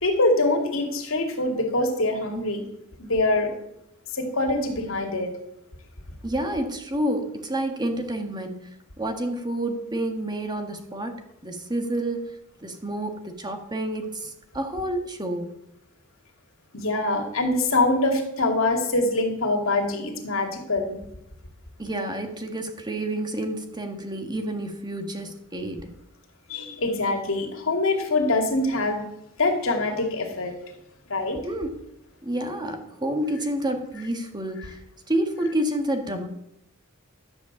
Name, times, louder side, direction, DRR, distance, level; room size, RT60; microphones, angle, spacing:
voice 1, 0.0-2.6 3.0-3.5 4.1-5.3 16.7-21.0 26.5-29.0 29.4-30.5 31.1-31.4, left 2 dB, 75° left, 3 dB, 2.5 m, -24 dB
voice 2, 6.2-8.7 9.0-12.3 12.6-15.5 21.8-25.9 31.4-31.8 32.2-34.8 35.1-36.3, right 1 dB, 20° right, 5 dB, 1.5 m, -29 dB
12.0 x 7.9 x 7.1 m, 0.80 s
head